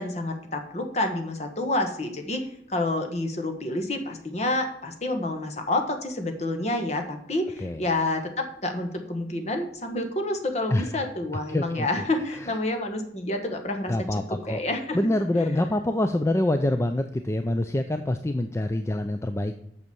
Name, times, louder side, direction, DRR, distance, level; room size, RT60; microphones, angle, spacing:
voice 1, 0.0-15.0 15.4-15.5, left 2 dB, 40° left, 5 dB, 1.4 m, -29 dB
voice 2, 10.7-11.0 11.5-11.9 12.3-12.6 13.9-14.6 14.9-19.5, left 1 dB, 15° left, 7 dB, 0.4 m, -26 dB
8.1 x 6.4 x 7.0 m, 0.71 s
head